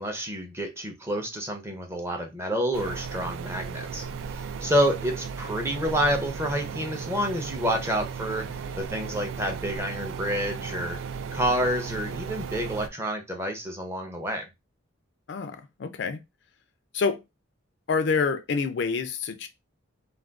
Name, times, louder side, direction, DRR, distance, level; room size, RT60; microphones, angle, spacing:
voice 1, 0.0-4.0 4.3-8.5 8.8-11.0 11.3-14.5, equal, 15° right, 0.6 m, -28 dB
sound 1, 2.7-12.9, right 6 dB, 75° right, 0.3 m, -35 dB
voice 2, 15.3-16.2 16.9-17.2 17.9-19.5, left 5 dB, 60° left, 0.4 m, -27 dB
2.4 x 2.3 x 3.4 m
head